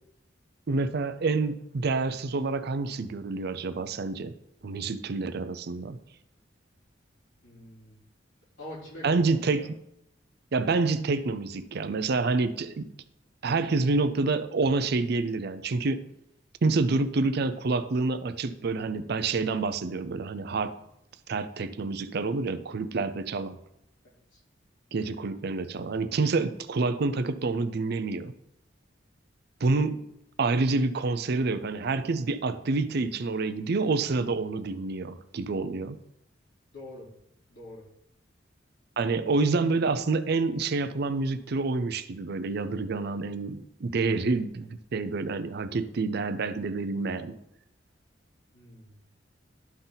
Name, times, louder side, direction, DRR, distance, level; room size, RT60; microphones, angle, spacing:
voice 1, 0.7-4.4 4.6-6.0 9.0-9.8 10.5-12.9 13.4-16.0 16.6-20.8 21.3-23.6 24.9-28.3 29.6-30.0 30.4-36.0 39.0-47.4, right 3 dB, 60° right, 12 dB, 0.5 m, -28 dB
voice 2, 7.4-7.9 8.6-9.7 24.3-24.4 36.7-37.1 37.5-37.8 48.5-49.0, left 1 dB, 75° left, -6 dB, 3.3 m, -44 dB
12.0 x 4.0 x 4.0 m, 0.78 s
head